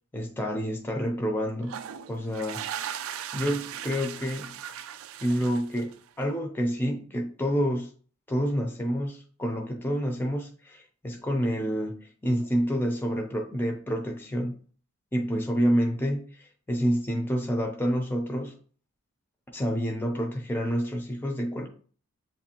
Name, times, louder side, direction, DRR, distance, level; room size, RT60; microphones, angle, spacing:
voice 1, 0.1-1.8 2.1-2.6 3.3-4.6 5.2-7.9 8.3-14.5 15.1-18.6 19.5-21.7, equal, 10° left, 0.4 m, -28 dB
sound 1, 1.6-6.2, right 9 dB, 65° right, 0.3 m, -38 dB
7.4 x 2.5 x 2.8 m
head